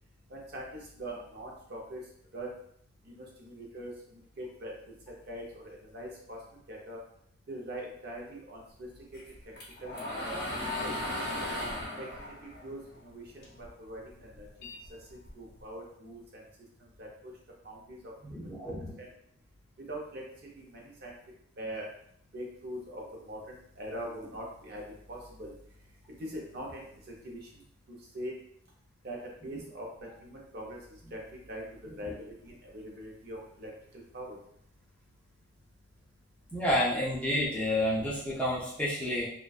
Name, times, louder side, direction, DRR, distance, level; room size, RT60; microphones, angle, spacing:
voice 1, 0.3-0.6 1.0-2.0 2.3-2.5 3.1-3.9 4.4-4.7 5.3-6.4 6.7-7.0 7.5-8.9 9.8-10.4 11.0-11.4 12.0-12.3 12.6-13.2 13.6-14.0 14.4-14.5 15.4-16.2 17.0-17.3 17.6-18.1 19.0-19.1 19.9-20.2 20.5-21.1 21.6-21.9 22.3-24.8 25.1-25.5 26.2-27.4 28.1-28.3 29.0-29.2 29.4-30.8 31.1-31.2 31.5-33.7 34.1-34.4, right 1 dB, 50° right, -1 dB, 0.5 m, -42 dB
sound 1, 9.1-13.7 14.0-15.6, left 1 dB, 45° left, 0.6 m, -37 dB
voice 2, 18.2-19.0 36.5-39.3, left 1 dB, 5° left, -8 dB, 0.4 m, -30 dB
2.5 x 2.2 x 2.3 m, 0.68 s
head